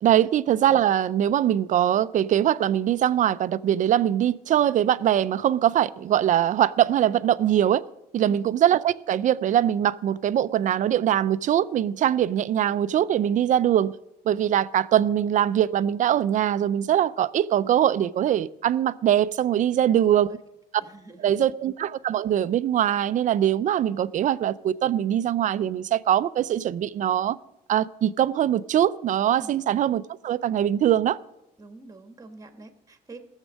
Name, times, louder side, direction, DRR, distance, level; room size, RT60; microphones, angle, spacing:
voice 1, 0.0-7.8 8.1-13.9 14.3-20.4 21.2-27.4 27.7-31.2, right 10 dB, 50° right, 0.5 m, -22 dB
voice 2, 19.7-20.4 20.8-21.5 29.3-29.5 31.6-33.3, right 2 dB, 20° right, 1.5 m, -46 dB
17.0 x 7.3 x 6.4 m
cardioid pair, 110°, 17 cm